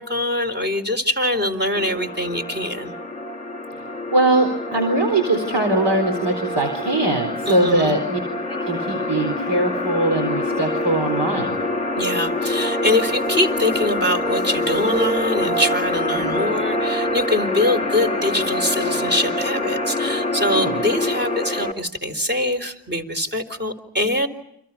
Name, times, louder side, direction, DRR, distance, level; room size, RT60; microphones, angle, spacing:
voice 1, 0.0-2.9 7.5-8.0 12.0-24.3, left 1 dB, 25° right, 6 dB, 4.0 m, -23 dB
sound 1, 1.7-21.7, left 1 dB, 15° left, 2.0 m, -25 dB
voice 2, 4.1-8.2 8.5-11.5 16.1-16.3 20.5-20.8, right 2 dB, 70° right, 5 dB, 4.3 m, -21 dB
30.0 x 26.5 x 5.7 m, 0.74 s
cardioid pair, 60°, 43 cm